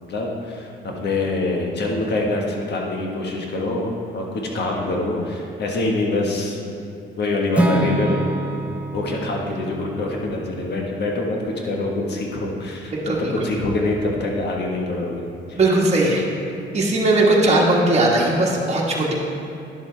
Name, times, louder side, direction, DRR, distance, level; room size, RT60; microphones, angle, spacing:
voice 1, 0.0-6.8 7.2-8.3 8.9-15.6, left 2 dB, 60° left, -1 dB, 1.5 m, -25 dB
Acoustic guitar / Strum, 7.5-11.6, right 2 dB, 5° right, 0.7 m, -26 dB
voice 2, 12.9-13.5 15.6-16.3 16.7-19.1, right 2 dB, 35° right, -4 dB, 1.6 m, -18 dB
10.5 x 7.3 x 3.4 m, 2.7 s
cardioid pair, 90°, 20 cm